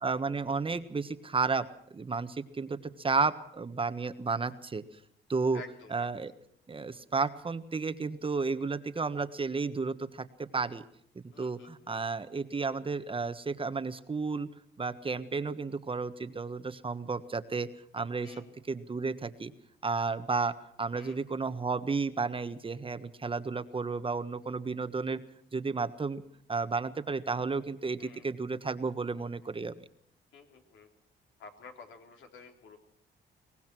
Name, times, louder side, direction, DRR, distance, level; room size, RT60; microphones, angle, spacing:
voice 1, 0.0-1.7 1.9-4.8 5.3-5.6 5.9-6.3 6.7-10.8 11.1-14.5 14.8-18.3 18.7-19.5 19.8-25.2 25.5-26.2 26.5-29.7, right 4 dB, 25° right, 11 dB, 1.4 m, -32 dB
voice 2, 5.5-6.1 11.3-12.1 18.2-18.5 20.9-21.2 28.0-28.3 30.3-30.9 31.4-32.8, left 4 dB, 70° left, 3 dB, 3.8 m, -51 dB
23.0 x 19.0 x 6.2 m, 0.66 s
cardioid pair, 90°, 20 cm